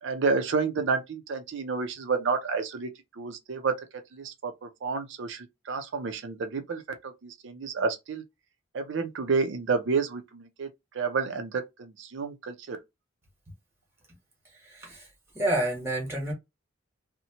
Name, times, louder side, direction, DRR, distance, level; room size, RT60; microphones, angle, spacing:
voice 1, 0.0-2.9 3.2-3.7 4.1-8.2 8.7-10.7 10.9-12.8, right 4 dB, 60° right, 0.4 m, -30 dB
voice 2, 14.5-15.1 15.3-16.3, right 1 dB, 10° right, 1.1 m, -29 dB
2.8 x 2.1 x 2.8 m
head